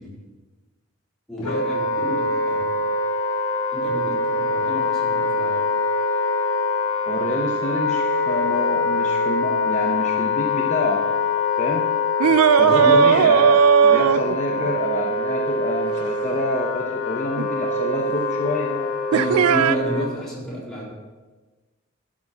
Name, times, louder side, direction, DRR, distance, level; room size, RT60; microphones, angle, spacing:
voice 1, 1.3-2.8 3.7-5.6 12.6-13.0 19.1-20.9, left 1 dB, ahead, -8 dB, 3.8 m, -31 dB
Wind instrument woodwind instrument, 1.4-20.1, left 3 dB, 80° left, 1.6 m, -24 dB
voice 2, 7.1-11.0 11.6-11.9 12.6-18.9, left 1 dB, 35° left, 0 dB, 0.9 m, -27 dB
Old man scream, 12.2-14.8 17.4-17.5 19.1-19.7, right 7 dB, 85° right, 0.4 m, -16 dB
11.5 x 6.2 x 6.2 m, 1.3 s
head